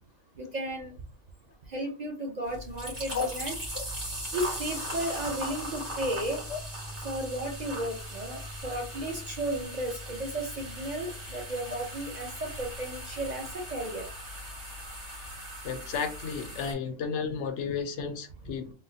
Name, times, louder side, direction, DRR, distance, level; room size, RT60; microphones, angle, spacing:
voice 1, 0.4-0.9 1.7-3.5 4.3-6.4 7.0-14.0, right 1 dB, 45° right, 1 dB, 0.6 m, -34 dB
sound 1, 2.5-16.7, equal, 70° right, 2.2 m, -39 dB
voice 2, 15.6-18.7, left 6 dB, 75° left, 7 dB, 0.9 m, -32 dB
3.7 x 2.1 x 2.7 m, 0.35 s
omnidirectional pair, 1.2 m